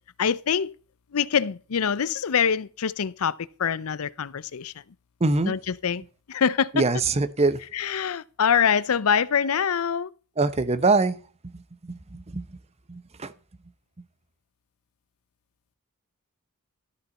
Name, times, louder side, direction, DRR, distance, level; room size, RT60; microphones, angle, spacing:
voice 1, 0.2-0.7 1.1-4.8 5.5-6.0 6.3-6.7 7.7-10.1, left 7 dB, 75° left, 0.6 m, -24 dB
voice 2, 5.2-5.6 6.7-7.6 10.4-11.2 11.5-12.4 12.9-13.3, right 3 dB, 30° right, 0.7 m, -24 dB
13.0 x 6.8 x 4.2 m
head